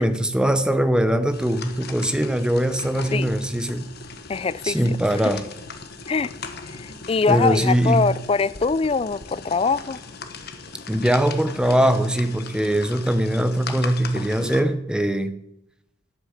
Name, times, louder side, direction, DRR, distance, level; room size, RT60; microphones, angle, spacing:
voice 1, 0.0-3.9 4.6-5.5 7.3-8.1 10.9-15.4, right 1 dB, 5° right, 0.7 m, -21 dB
sound 1, 1.3-14.6, left 4 dB, 55° left, 1.2 m, -38 dB
voice 2, 4.3-4.8 6.1-6.3 6.7-10.0, left 4 dB, 30° left, 0.3 m, -23 dB
11.5 x 8.4 x 7.2 m
head